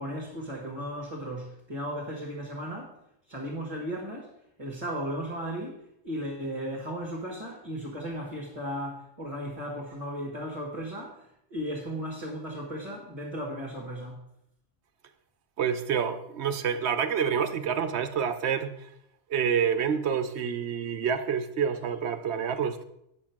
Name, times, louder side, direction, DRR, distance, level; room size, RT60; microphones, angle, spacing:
voice 1, 0.0-3.0 3.3-4.3 4.6-14.2, equal, 30° right, -4 dB, 1.7 m, -36 dB
voice 2, 15.6-18.7 19.3-22.8, right 7 dB, 70° right, 10 dB, 1.0 m, -28 dB
8.7 x 6.6 x 5.8 m, 0.78 s
omnidirectional pair, 1.2 m